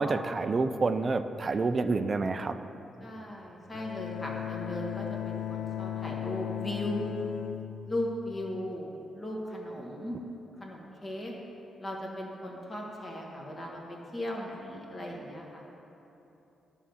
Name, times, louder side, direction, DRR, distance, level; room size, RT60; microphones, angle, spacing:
voice 1, 0.0-2.6, right 3 dB, 30° right, 10 dB, 0.3 m, -28 dB
voice 2, 3.0-7.1 7.8-10.2 10.6-11.3 11.8-15.6, left 1 dB, 25° left, -2 dB, 1.4 m, -37 dB
Bowed string instrument, 3.7-8.7, left 10 dB, 85° left, 0.3 m, -37 dB
11.0 x 3.9 x 7.0 m, 3.0 s
cardioid pair, 140°, 0 cm